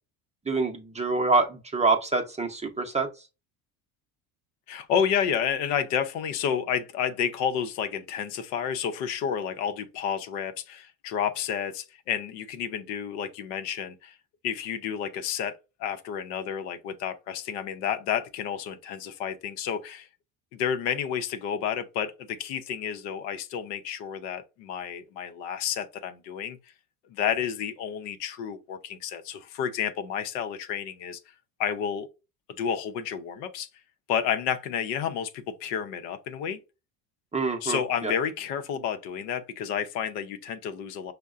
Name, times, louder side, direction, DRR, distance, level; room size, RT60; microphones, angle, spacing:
voice 1, 0.5-3.1 37.3-38.1, right 3 dB, 15° right, 0.6 m, -26 dB
voice 2, 4.7-14.2 14.4-20.1 20.5-26.6 27.1-31.2 31.6-32.1 32.5-33.7 34.1-36.6 37.6-41.1, left 8 dB, 80° left, 0.7 m, -30 dB
5.3 x 2.2 x 2.3 m
supercardioid pair, 90°, 47 cm